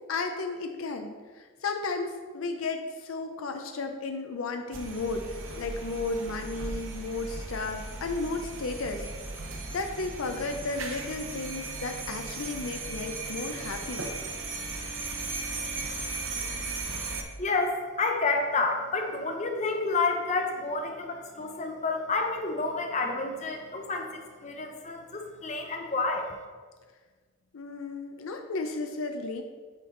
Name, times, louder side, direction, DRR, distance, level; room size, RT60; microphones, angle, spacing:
voice 1, 0.1-5.2 5.6-9.0 9.7-14.1 27.5-29.4, left 3 dB, 80° left, 5 dB, 0.6 m, -34 dB
sound 1, 4.7-17.2, right 3 dB, 70° right, 0.8 m, -37 dB
voice 2, 17.4-26.4, left 3 dB, 35° left, 3 dB, 0.7 m, -29 dB
8.1 x 4.4 x 3.8 m, 1.5 s
head